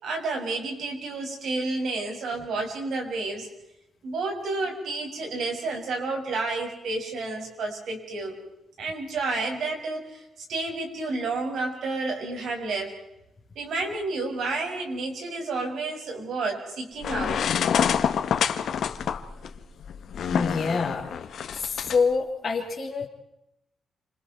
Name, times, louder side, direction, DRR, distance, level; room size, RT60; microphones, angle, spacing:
voice 1, 0.0-3.5 4.0-8.4 8.8-13.0 13.6-17.5, right 3 dB, 65° right, 2 dB, 7.3 m, -30 dB
sound 1, 17.0-22.0, left 8 dB, 60° left, 1.7 m, -27 dB
voice 2, 20.3-21.1 21.6-23.1, left 4 dB, 25° left, -5 dB, 3.9 m, -26 dB
29.0 x 28.0 x 4.7 m, 0.86 s
wide cardioid pair, 165°, 0 cm